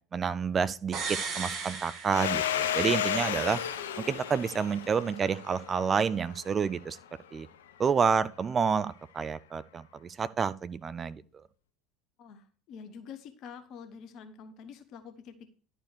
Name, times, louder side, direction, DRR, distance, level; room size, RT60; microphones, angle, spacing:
voice 1, 0.1-3.6 4.0-7.0 7.3-7.5 7.8-11.2, right 6 dB, 30° right, 0.5 m, -29 dB
sound 1, 0.9-2.9 3.2-3.3, right 5 dB, 45° right, 1.6 m, -36 dB
Domestic sounds home sounds, 2.1-6.5, left 10 dB, 70° left, 0.5 m, -33 dB
Chink clink, 2.5-7.7, right 3 dB, 80° right, 0.7 m, -51 dB
voice 2, 12.2-15.5, left 6 dB, 45° left, 1.0 m, -47 dB
11.0 x 4.8 x 4.7 m
figure-of-eight pair, 70°, 0 cm